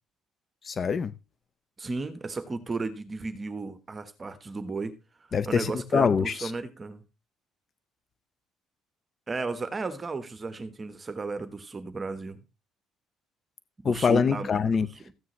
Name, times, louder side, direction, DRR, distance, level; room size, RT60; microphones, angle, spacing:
voice 1, 0.6-1.1 5.3-6.5 13.8-15.1, left 6 dB, 35° left, 0.6 m, -25 dB
voice 2, 1.8-4.9 5.5-7.0 9.3-12.4 13.8-14.5 15.1-15.2, right 3 dB, 25° right, 1.2 m, -34 dB
14.5 x 9.4 x 3.2 m
cardioid pair, 130°, 0 cm